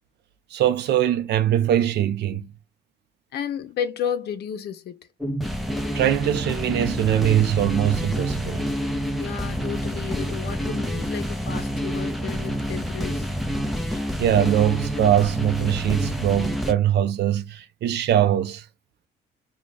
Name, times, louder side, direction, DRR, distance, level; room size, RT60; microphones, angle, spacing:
voice 1, 0.5-2.5 5.9-8.6 13.9-18.7, right 11 dB, 65° right, 0.6 m, -22 dB
voice 2, 3.3-5.1 9.2-13.3, left 8 dB, 65° left, 0.6 m, -32 dB
sound 1, 5.2-16.7, equal, ahead, 0.7 m, -28 dB
3.2 x 2.3 x 3.9 m
supercardioid pair, 80°, 18 cm